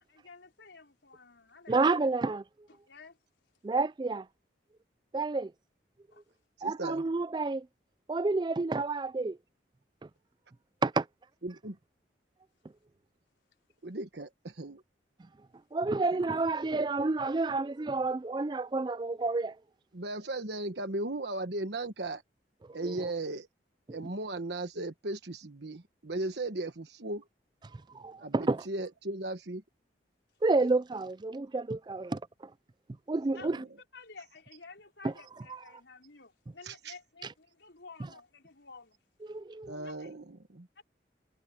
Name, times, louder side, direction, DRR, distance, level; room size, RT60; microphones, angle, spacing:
voice 1, 0.1-1.8 2.7-3.2 6.1-6.2 33.3-33.5 33.9-39.0 39.8-40.1 40.8-40.9, left 4 dB, 85° left, 4.5 m, -52 dB
voice 2, 1.7-2.4 3.6-4.3 5.1-5.5 6.6-7.7 8.1-9.4 10.0-10.1 10.8-11.0 15.7-19.6 22.8-23.1 23.9-24.0 27.7-28.6 30.4-32.5 33.1-33.6 35.0-35.1 35.5-35.6 39.2-39.7, right 3 dB, 25° right, 0.3 m, -30 dB
voice 3, 6.6-7.0 11.4-11.7 13.8-14.8 16.1-16.2 19.9-22.2 22.7-23.5 23.9-27.3 28.2-29.6 33.3-33.6 36.6-36.9 39.7-40.7, right 2 dB, 70° right, 1.3 m, -37 dB
head